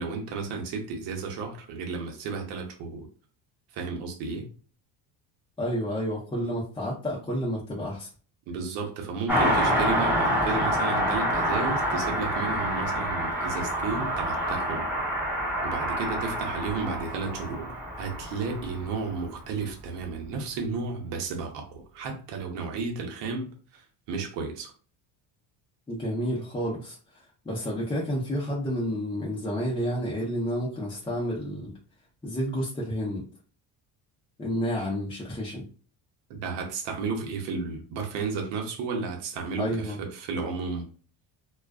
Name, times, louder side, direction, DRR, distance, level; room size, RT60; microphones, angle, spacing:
voice 1, 0.0-3.1 3.7-4.5 8.5-14.9 15.6-23.5 23.7-24.7 36.3-40.8, right 4 dB, 80° right, 0.8 m, -33 dB
voice 2, 5.6-8.1 25.9-31.7 32.2-33.3 34.4-35.7 39.6-40.0, equal, 10° left, 0.7 m, -30 dB
Car passing by, 9.3-19.2 19.5-19.6, equal, 5° right, 1.2 m, -27 dB
2.3 x 2.3 x 2.3 m
cardioid pair, 105°, 42 cm